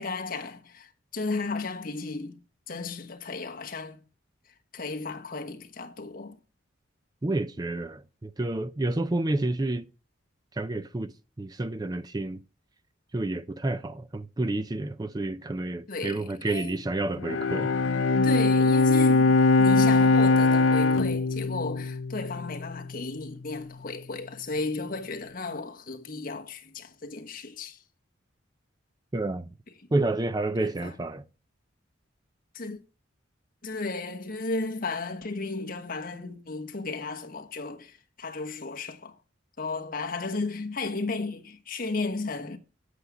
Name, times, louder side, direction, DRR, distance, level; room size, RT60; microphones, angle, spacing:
voice 1, 0.0-2.4 2.7-4.0 4.7-6.4 15.9-16.8 18.2-27.8 30.6-31.0 32.5-32.8 33.6-39.2 39.6-42.6, left 3 dB, 45° left, 1.2 m, -34 dB
voice 2, 7.2-9.9 10.6-11.1 11.4-12.4 13.1-17.7 29.1-29.5 29.9-31.2, right 2 dB, 20° right, 0.4 m, -29 dB
Bowed string instrument, 17.2-22.7, left 3 dB, 70° left, 0.5 m, -22 dB
8.2 x 8.1 x 5.0 m
head